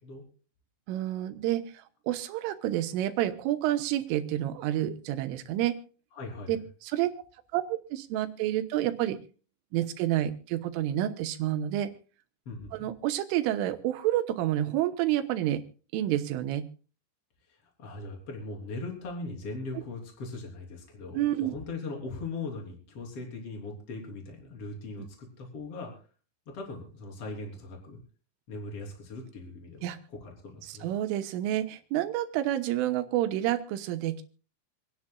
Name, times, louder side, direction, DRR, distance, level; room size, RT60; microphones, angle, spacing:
voice 1, 0.9-1.6 2.1-5.8 6.5-6.6 6.8-7.1 7.5-9.2 9.7-11.9 12.7-15.6 15.9-16.7 21.1-21.5 29.8-30.0 30.8-34.2, right 13 dB, 80° right, 8 dB, 3.4 m, -29 dB
voice 2, 6.1-6.6 12.5-12.9 17.5-25.9 26.5-28.0 28.5-30.9, left 3 dB, 30° left, 0 dB, 3.6 m, -40 dB
27.0 x 10.5 x 2.3 m, 0.38 s
omnidirectional pair, 5.9 m